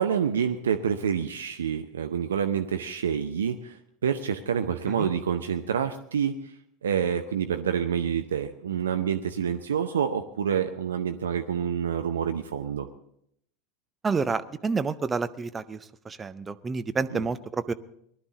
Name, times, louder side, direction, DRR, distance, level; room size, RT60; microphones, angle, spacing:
voice 1, 0.0-6.6 6.8-12.9 17.1-17.3, right 7 dB, 75° right, 8 dB, 0.6 m, -27 dB
voice 2, 14.0-15.8 16.0-17.7, right 4 dB, 20° right, 12 dB, 0.7 m, -29 dB
19.5 x 12.0 x 3.9 m, 0.72 s
figure-of-eight pair, 80°, 0 cm